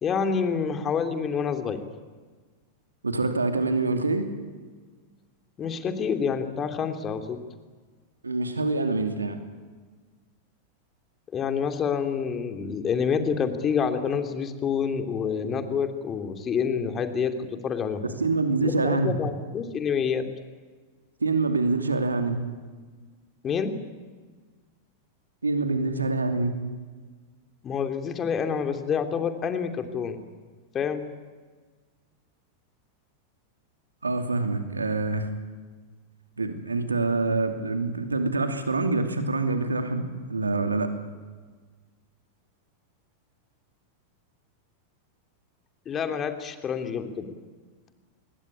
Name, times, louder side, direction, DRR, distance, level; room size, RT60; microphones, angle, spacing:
voice 1, 0.0-1.8 5.6-7.4 11.3-18.0 18.6-20.2 23.4-23.7 27.6-30.2 30.7-31.0 45.9-47.3, left 6 dB, 25° left, 7 dB, 2.9 m, -27 dB
voice 2, 3.0-4.3 8.2-9.4 18.2-19.1 21.2-22.4 25.4-26.6 34.0-35.3 36.4-40.9, right 3 dB, 80° right, 6 dB, 2.7 m, -25 dB
26.0 x 21.5 x 9.9 m, 1.4 s
figure-of-eight pair, 90°, 0 cm